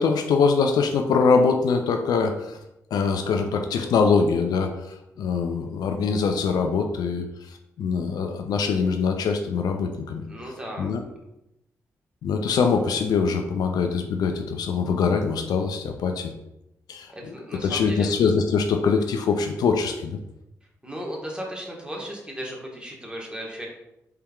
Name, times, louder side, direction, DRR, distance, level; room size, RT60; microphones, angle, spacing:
voice 1, 0.0-2.6 2.9-10.3 10.8-11.0 12.2-16.3 16.9-17.1 17.6-20.2, left 5 dB, 75° left, 5 dB, 0.4 m, -23 dB
voice 2, 10.3-10.9 17.1-18.2 20.8-23.7, equal, 15° right, -1 dB, 1.5 m, -36 dB
4.4 x 3.4 x 2.3 m, 0.87 s
supercardioid pair, 45°, 7 cm